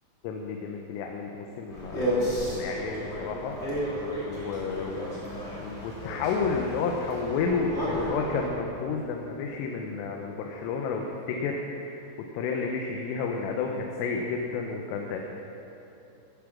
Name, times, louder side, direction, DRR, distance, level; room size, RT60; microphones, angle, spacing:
voice 1, 0.2-3.6 4.2-5.2 5.6-12.0 12.4-15.2, left 5 dB, 90° left, 1 dB, 3.4 m, -31 dB
sound 1, 1.7-8.5, equal, 20° left, 2.4 m, -33 dB
14.0 x 8.4 x 6.1 m, 2.9 s
omnidirectional pair, 5.6 m